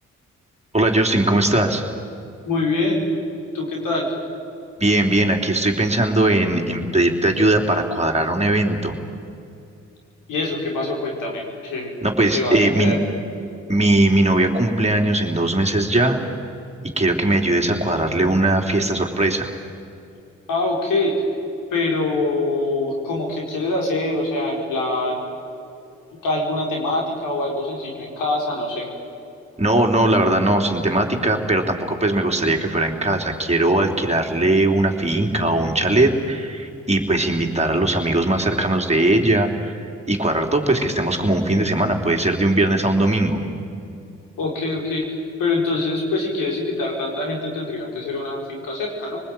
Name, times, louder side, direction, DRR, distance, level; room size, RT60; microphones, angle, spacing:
voice 1, 0.7-1.8 4.8-8.9 12.0-13.0 13.7-16.2 17.0-19.5 29.6-43.4, right 1 dB, 20° right, 2 dB, 3.5 m, -19 dB
voice 2, 2.4-3.1 3.5-4.1 10.3-11.9 12.3-13.0 17.3-17.4 20.5-21.1 21.7-25.2 26.2-28.9 44.4-45.0 45.4-49.2, left 2 dB, 85° left, -1 dB, 5.0 m, -24 dB
25.5 x 20.0 x 9.2 m, 2.6 s
supercardioid pair, 45°, 31 cm